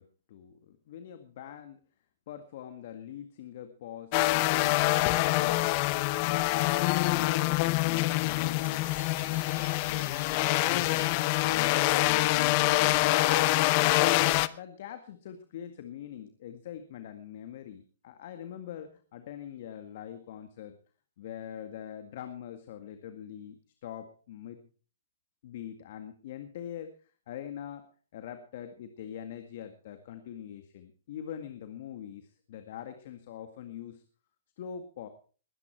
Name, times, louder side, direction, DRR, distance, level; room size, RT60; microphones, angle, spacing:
voice 1, 0.0-1.8 2.3-5.1 5.4-5.9 6.2-8.9 9.2-11.1 11.4-13.2 13.7-20.7 21.2-24.7 25.4-26.9 27.3-27.9 28.1-34.0 34.6-35.1, left 9 dB, 55° left, 8 dB, 1.9 m, -43 dB
sound 1, 4.1-14.5, left 19 dB, 40° left, 0.8 m, -25 dB
Chime, 8.4-13.0, right 5 dB, 75° right, 6.7 m, -52 dB
21.0 x 9.8 x 4.7 m, 0.40 s
hypercardioid pair, 135°, 0 cm